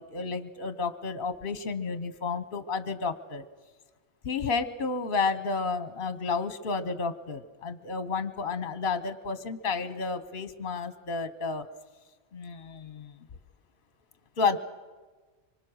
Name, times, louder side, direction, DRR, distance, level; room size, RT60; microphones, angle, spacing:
voice 1, 0.0-3.4 4.2-11.6 12.3-13.1 14.4-14.6, left 4 dB, 55° left, 11 dB, 1.1 m, -31 dB
25.0 x 24.5 x 6.3 m, 1.3 s
omnidirectional pair, 1.1 m